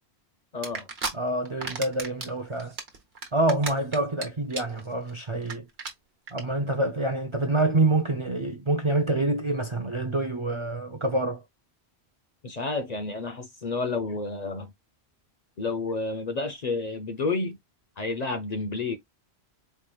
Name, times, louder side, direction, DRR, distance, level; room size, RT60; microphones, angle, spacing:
voice 1, 0.5-0.9 12.4-14.7 15.6-17.6 18.0-19.0, left 3 dB, 45° left, 0.6 m, -30 dB
sound 1, 0.6-1.1 1.5-2.3 2.6-4.2 4.5-4.8 5.1-5.2 5.4-5.5 5.8-5.9 6.3-6.4, right 4 dB, 65° right, 1.3 m, -32 dB
voice 2, 1.1-2.7 3.3-5.6 6.3-11.4, right 2 dB, 40° right, 0.4 m, -26 dB
4.6 x 3.0 x 2.3 m
omnidirectional pair, 1.1 m